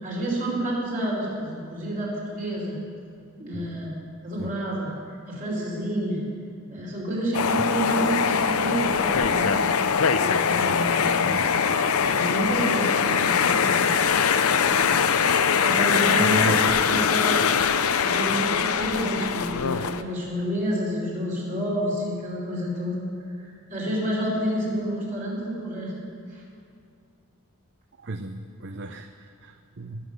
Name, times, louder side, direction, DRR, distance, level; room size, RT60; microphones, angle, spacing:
voice 1, 0.0-2.8 3.4-3.9 4.2-4.9 5.3-6.2 6.7-9.6 10.2-11.4 12.0-13.9 15.6-17.3 17.7-23.1 23.4-25.9 26.3-26.4, equal, 40° right, -4 dB, 4.8 m, -29 dB
sound 1, 7.3-20.0, left 6 dB, 85° left, 0.7 m, -22 dB
voice 2, 16.2-17.1 28.0-30.1, right 3 dB, 55° right, 7 dB, 0.6 m, -34 dB
20.5 x 7.5 x 8.0 m, 2.4 s
head